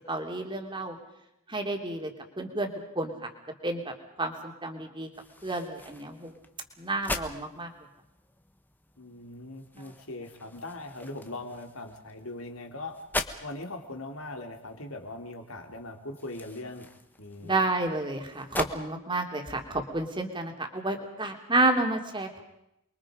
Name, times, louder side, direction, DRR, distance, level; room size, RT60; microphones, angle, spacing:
voice 1, 0.1-1.0 1.5-2.1 2.4-2.7 2.9-3.3 3.6-5.1 5.4-6.4 6.8-7.7 9.7-10.0 17.4-22.4, right 2 dB, 20° right, 3 dB, 3.0 m, -30 dB
sound 1, 5.1-18.7, left 2 dB, 10° left, 1.4 m, -42 dB
voice 2, 9.0-13.0 13.4-17.6, left 2 dB, 75° left, 3 dB, 3.4 m, -40 dB
29.0 x 23.0 x 5.2 m, 0.85 s
head